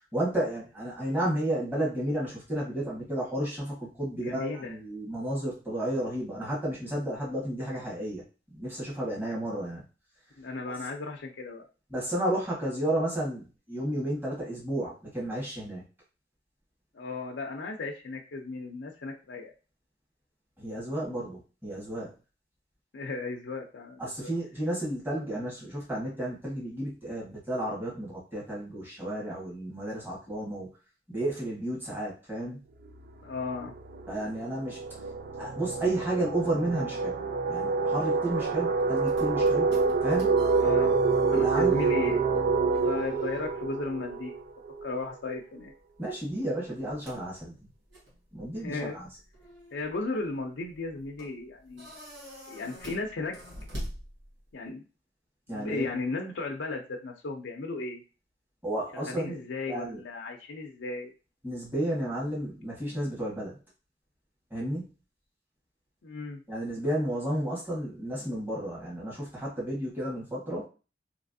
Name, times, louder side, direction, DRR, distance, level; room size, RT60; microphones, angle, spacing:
voice 1, 0.1-8.2 8.5-9.8 11.9-15.8 20.6-22.1 24.0-30.7 31.1-32.6 34.1-34.8 35.4-37.1 37.5-39.7 40.0-40.4 41.3-41.8 46.0-47.7 48.3-49.1 55.5-56.0 58.6-59.4 59.7-60.0 61.4-63.6 64.5-64.9 66.5-70.6, right 1 dB, 10° right, -6 dB, 1.5 m, -32 dB
voice 2, 4.2-4.8 10.4-11.6 16.9-19.5 22.9-24.3 33.2-33.7 40.6-41.0 41.3-42.2 42.7-44.3 44.8-45.7 48.6-49.0 49.7-51.9 52.5-53.4 54.5-54.8 55.5-58.0 58.9-61.1 66.0-66.4, left 3 dB, 80° left, 1 dB, 0.5 m, -35 dB
sound 1, 32.9-33.1 33.4-45.0, right 4 dB, 50° right, 0.4 m, -27 dB
sound 2, 38.3-54.7, equal, 75° right, 1.5 m, -48 dB
3.2 x 2.9 x 2.6 m, 0.33 s
head